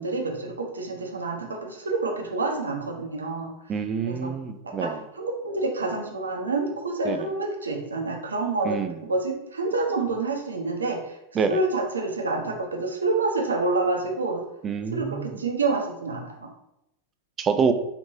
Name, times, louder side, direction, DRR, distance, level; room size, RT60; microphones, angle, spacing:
voice 1, 0.0-3.5 4.1-4.3 4.6-11.2 11.5-14.4 14.9-16.5, right 3 dB, 85° right, 2 dB, 0.6 m, -28 dB
voice 2, 3.7-5.0 7.0-7.2 8.6-8.9 11.4-11.6 14.6-15.4 17.4-17.7, right 6 dB, 30° right, 8 dB, 0.3 m, -26 dB
3.0 x 2.5 x 2.7 m, 0.83 s
figure-of-eight pair, 90°, 0 cm